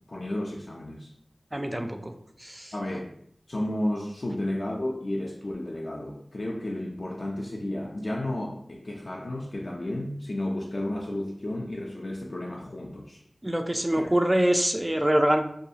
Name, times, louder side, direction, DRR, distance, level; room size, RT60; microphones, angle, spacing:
voice 1, 0.1-1.1 2.7-3.1 3.5-13.2 13.9-14.1, left 1 dB, 60° left, -2 dB, 0.3 m, -32 dB
voice 2, 1.5-2.1 2.4-2.7 13.4-15.4, right 1 dB, 20° right, 6 dB, 0.3 m, -24 dB
2.4 x 2.3 x 2.7 m, 0.70 s
wide cardioid pair, 45°, 0 cm